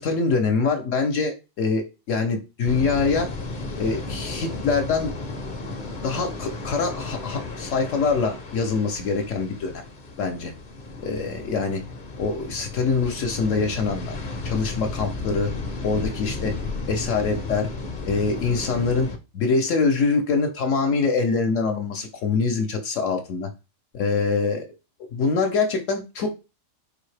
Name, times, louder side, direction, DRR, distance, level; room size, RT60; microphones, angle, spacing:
voice 1, 0.0-3.3 3.8-5.1 6.0-9.8 10.2-10.5 11.0-11.8 12.2-14.2 14.4-15.5 15.8-16.5 16.9-17.7 18.0-19.1 19.3-23.5 23.9-24.6 25.1-26.3, left 4 dB, 70° left, 4 dB, 1.0 m, -24 dB
sound 1, 2.6-19.2, left 3 dB, 45° left, 0.7 m, -34 dB
4.6 x 2.7 x 3.2 m, 0.28 s
omnidirectional pair, 1.4 m